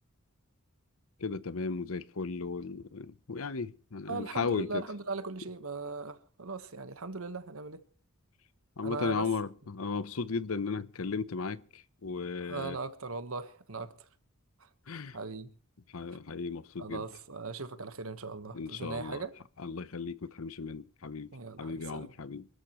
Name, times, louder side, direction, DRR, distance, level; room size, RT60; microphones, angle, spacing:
voice 1, 1.2-4.8 8.8-12.8 14.9-15.2 15.9-17.0 18.5-19.2 19.6-21.3 21.6-22.5, left 4 dB, 75° left, 0.8 m, -35 dB
voice 2, 4.1-7.8 8.8-9.3 12.4-14.1 14.6-14.7 15.1-15.5 16.8-19.3 21.3-22.1, right 3 dB, 75° right, 1.3 m, -39 dB
27.0 x 13.0 x 3.1 m
head